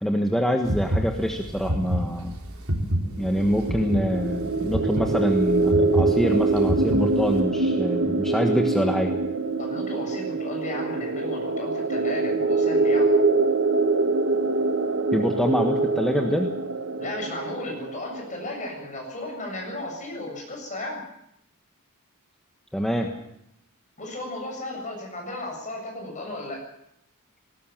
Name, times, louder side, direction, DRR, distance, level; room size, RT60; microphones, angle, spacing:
voice 1, 0.0-2.4 3.2-9.2 15.1-16.6 22.7-23.1, equal, ahead, 2 dB, 1.4 m, -25 dB
sound 1, 0.6-7.4, equal, 75° right, 4.0 m, -28 dB
sound 2, 3.2-18.9, right 3 dB, 55° right, 1.1 m, -24 dB
voice 2, 9.6-13.1 17.0-21.0 24.0-26.6, left 1 dB, 35° left, 1 dB, 7.4 m, -35 dB
18.5 x 18.5 x 7.5 m, 0.79 s
head